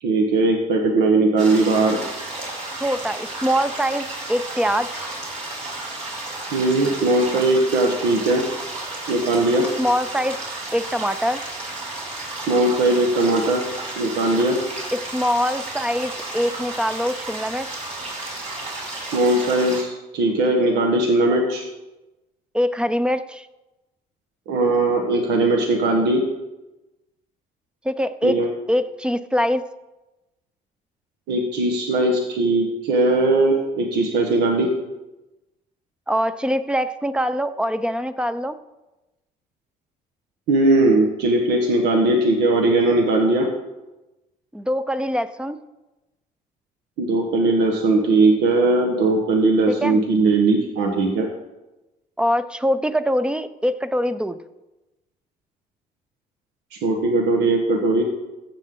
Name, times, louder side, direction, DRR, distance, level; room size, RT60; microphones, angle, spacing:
voice 1, 0.0-2.0 6.5-8.4 9.1-9.6 12.5-13.6 14.0-14.6 19.1-21.6 24.5-26.2 28.2-28.5 31.3-34.7 40.5-43.5 47.0-51.3 56.8-58.0, right 2 dB, 85° right, 1 dB, 1.4 m, -19 dB
sound 1, 1.4-19.8, right 2 dB, 40° right, 4.0 m, -33 dB
voice 2, 2.8-5.0 9.8-10.4 10.7-11.4 14.9-17.8 22.5-23.5 27.8-28.4 28.7-29.6 36.1-38.5 44.5-45.6 49.7-50.0 52.2-54.4, equal, 5° right, 13 dB, 0.5 m, -23 dB
14.5 x 7.6 x 3.8 m, 1.0 s
cardioid pair, 110°, 17 cm